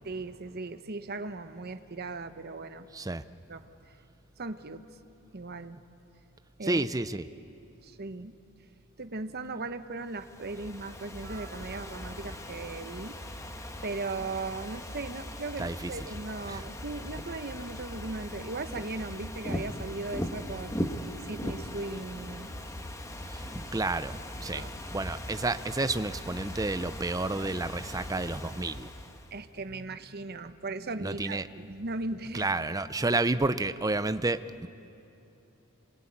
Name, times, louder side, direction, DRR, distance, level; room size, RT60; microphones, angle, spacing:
voice 1, 0.0-2.9 3.5-4.0 4.4-4.8 5.3-5.8 6.6-6.8 7.8-8.3 9.0-13.2 13.8-22.5 24.4-24.7 29.3-32.5, right 3 dB, 45° right, 9 dB, 1.0 m, -38 dB
voice 2, 2.9-3.2 6.6-7.3 15.6-16.0 16.5-16.6 23.2-28.9 31.0-31.5 32.3-34.7, right 2 dB, 15° right, 12 dB, 0.6 m, -30 dB
Ocean / Fireworks, 10.1-29.4, left 1 dB, 15° left, 1.3 m, -39 dB
28.0 x 22.5 x 8.8 m, 2.8 s
head